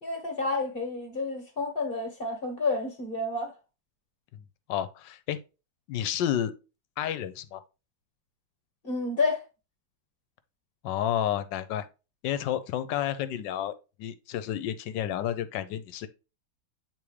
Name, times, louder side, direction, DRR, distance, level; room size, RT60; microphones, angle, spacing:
voice 1, 0.0-3.5 8.8-9.4, left 3 dB, 35° left, 1.4 m, -30 dB
voice 2, 4.7-5.4 5.9-6.5 7.0-7.6 10.8-11.9 12.2-13.7 14.0-16.1, left 11 dB, 75° left, 1.3 m, -30 dB
8.4 x 3.6 x 3.2 m
omnidirectional pair, 2.1 m